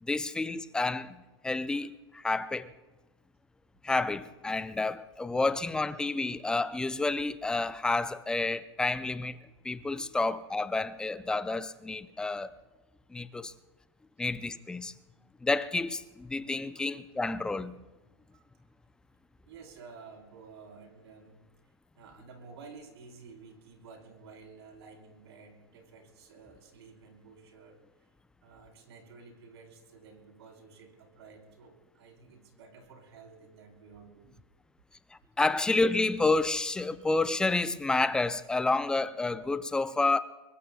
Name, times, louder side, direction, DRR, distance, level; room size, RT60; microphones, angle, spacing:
voice 1, 0.0-2.7 3.8-9.4 9.6-12.5 13.1-13.5 14.2-14.9 15.4-17.8 35.4-40.2, left 3 dB, 5° left, 0.4 m, -29 dB
voice 2, 18.3-18.7 19.5-21.5 21.9-28.1 28.4-34.3, right 4 dB, 70° right, 4.0 m, -52 dB
25.0 x 22.0 x 2.3 m
supercardioid pair, 145°, 14 cm